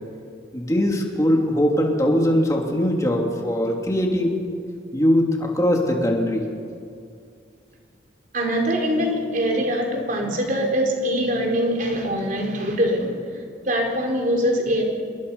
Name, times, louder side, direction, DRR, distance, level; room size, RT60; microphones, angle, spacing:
voice 1, 0.5-4.3 4.9-6.4, equal, 15° left, 0 dB, 3.1 m, -21 dB
voice 2, 8.3-13.2 13.6-14.8, equal, 45° right, 1 dB, 4.3 m, -23 dB
28.0 x 21.0 x 5.6 m, 2.3 s
head